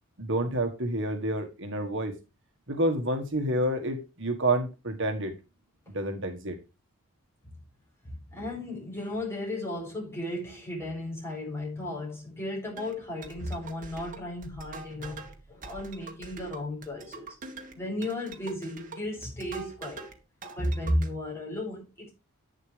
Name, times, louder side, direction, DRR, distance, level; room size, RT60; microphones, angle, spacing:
voice 1, 0.2-2.1 2.7-5.4 5.9-6.6, right 1 dB, 55° right, 1.7 m, -29 dB
voice 2, 8.1-15.2 15.5-17.3 17.7-20.1 20.6-22.1, left 1 dB, 10° left, 7.4 m, -34 dB
sound 1, 12.8-20.2 20.4-21.1, right 3 dB, 40° right, 2.1 m, -44 dB
11.0 x 9.8 x 3.4 m
head